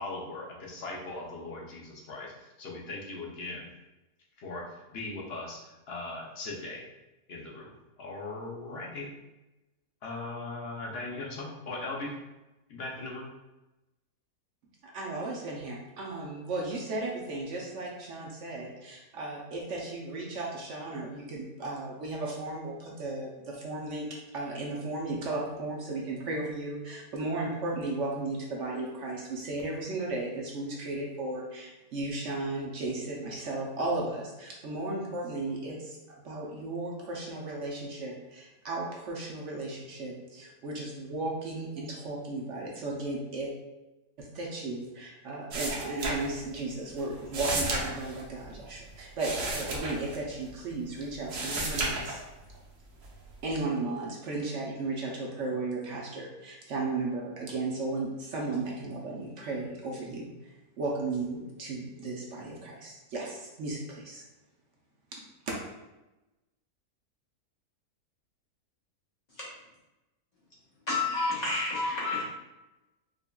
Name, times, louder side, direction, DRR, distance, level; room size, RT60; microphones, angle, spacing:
voice 1, 0.0-3.7 4.4-6.9 7.3-7.7 8.0-9.1 10.0-12.1 12.7-13.3, left 2 dB, 60° left, -2 dB, 0.7 m, -39 dB
voice 2, 14.9-24.1 24.3-36.0 36.2-43.5 44.2-52.2 53.4-60.3 60.8-64.2 65.5-65.6, right 2 dB, 60° right, -2 dB, 0.9 m, -35 dB
sound 1, 45.5-46.7 47.0-50.8 51.1-52.6 53.0-53.6, right 2 dB, 80° right, 1.3 m, -33 dB
voice 3, 70.9-72.2, left 3 dB, 30° left, -8 dB, 1.2 m, -29 dB
5.0 x 2.5 x 2.3 m, 1.0 s
omnidirectional pair, 1.6 m